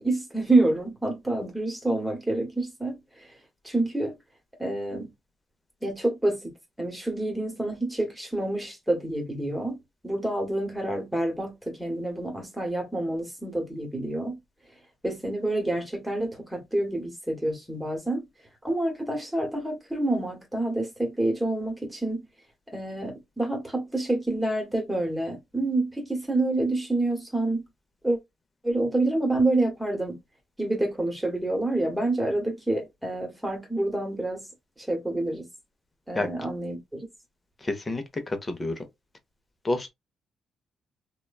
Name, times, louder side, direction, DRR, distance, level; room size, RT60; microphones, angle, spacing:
voice 1, 0.0-3.3 3.6-4.2 4.6-5.1 5.8-6.5 6.8-9.8 10.0-14.4 15.0-18.3 18.6-22.2 22.7-27.6 28.0-28.2 28.6-30.2 30.6-34.4 34.8-35.5 36.1-37.1, right 2 dB, 5° right, 1.2 m, -27 dB
voice 2, 37.6-38.8 39.6-39.9, left 2 dB, 25° left, 0.7 m, -29 dB
2.9 x 2.2 x 2.3 m
cardioid pair, 90°, 0 cm